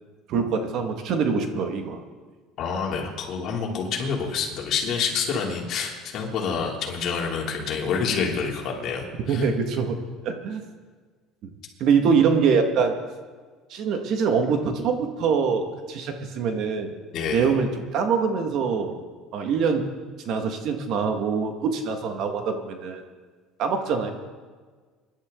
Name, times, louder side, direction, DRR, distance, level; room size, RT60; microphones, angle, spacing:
voice 1, 0.3-2.0 9.3-10.0 10.2-10.6 11.4-11.5 11.8-12.9 13.7-16.9 17.3-19.0 19.3-19.8 20.3-23.0 23.6-24.1, right 5 dB, 55° right, 5 dB, 1.8 m, -24 dB
voice 2, 2.6-9.5 17.1-17.5, left 5 dB, 50° left, -1 dB, 3.0 m, -28 dB
24.5 x 11.5 x 3.8 m, 1.5 s
cardioid pair, 135°, 0 cm